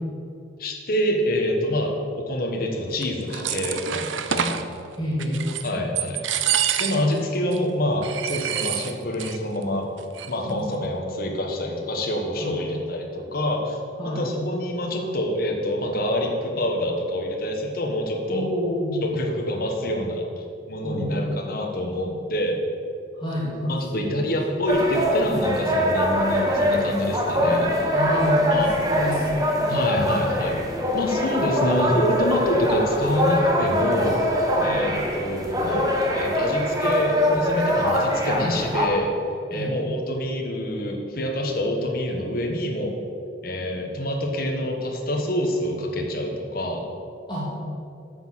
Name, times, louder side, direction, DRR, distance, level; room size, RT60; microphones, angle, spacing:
voice 1, 0.6-4.6 5.6-6.2 6.8-9.9 10.3-13.8 14.1-18.5 19.0-22.6 23.7-27.9 28.5-28.7 29.7-34.2 34.6-39.1 39.5-42.9 43.4-46.8, left 1 dB, 50° left, 1 dB, 1.4 m, -26 dB
sound 1, 3.0-4.6 5.2-5.7 6.0-7.2 7.5-7.6 8.0-9.4 9.6-9.7 10.0-10.5, right 9 dB, 85° right, 0.6 m, -27 dB
voice 2, 5.0-5.4 10.4-10.6 12.4-12.5 14.0-14.3 18.3-19.1 20.8-21.2 23.2-24.4 27.9-28.4 28.7-29.9 34.6-34.8 39.5-39.7 47.3-47.5, equal, 25° left, -7 dB, 2.3 m, -28 dB
sound 2, 24.7-38.9, equal, 20° right, 1.2 m, -23 dB
9.1 x 6.4 x 7.5 m, 2.6 s
head